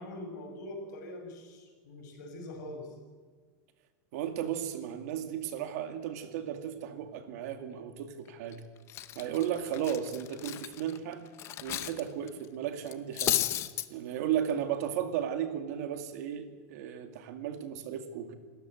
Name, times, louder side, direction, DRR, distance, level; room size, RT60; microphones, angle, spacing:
voice 1, 0.0-3.0, left 1 dB, 80° left, 4 dB, 5.9 m, -43 dB
voice 2, 4.1-8.6 9.2-11.2 11.6-13.4 13.9-18.3, right 9 dB, 65° right, 8 dB, 2.3 m, -35 dB
Cutlery silverware, 8.3-8.5 8.9-12.0 12.3-12.5 12.9-13.9, left 13 dB, 30° left, 0.8 m, -33 dB
27.5 x 13.5 x 7.9 m, 1.5 s
supercardioid pair, 170°, 9 cm